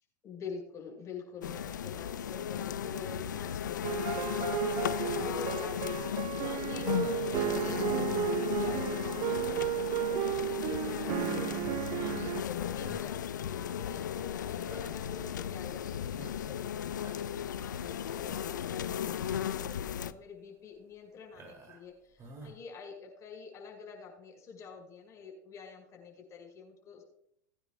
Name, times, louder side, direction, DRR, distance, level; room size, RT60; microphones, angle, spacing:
voice 1, 0.2-27.0, left 5 dB, 30° left, 1 dB, 5.5 m, -46 dB
sound 1, 1.4-20.1, left 9 dB, 85° left, 0.5 m, -35 dB
sound 2, 3.8-12.4, right 17 dB, 45° right, 0.5 m, -34 dB
sound 3, 12.8-13.3 14.6-15.0 15.6-15.7 16.1-16.6 16.9-17.4 18.3-18.6 19.2-19.6 20.1-20.3 21.3-21.9 22.2-22.6, right 2 dB, 30° right, 3.0 m, -51 dB
20.5 x 9.8 x 2.4 m, 0.72 s
hypercardioid pair, 105°, 10 cm